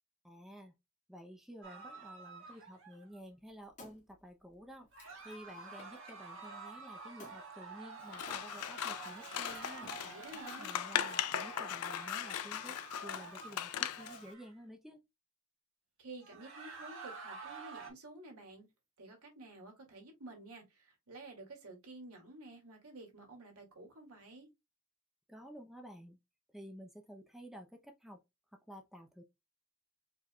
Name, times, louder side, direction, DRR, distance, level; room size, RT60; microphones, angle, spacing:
voice 1, 0.2-0.8 1.1-4.9 5.2-9.9 10.6-12.8 13.0-15.0 25.3-26.2 26.5-28.2 28.7-29.2, equal, ahead, 0.5 m, -52 dB
sound 1, 1.6-3.2 4.9-14.5 16.2-17.9, right 4 dB, 55° right, 1.8 m, -49 dB
Wood, 3.2-6.2 7.2-7.4 8.3-8.8 9.4-10.4 11.0-11.1, left 2 dB, 35° left, 2.0 m, -55 dB
Scissors, 8.1-14.2, left 10 dB, 85° left, 0.4 m, -39 dB
voice 2, 9.9-10.7 16.0-18.7 19.0-24.5, right 2 dB, 85° right, 2.2 m, -51 dB
4.7 x 4.5 x 2.2 m
head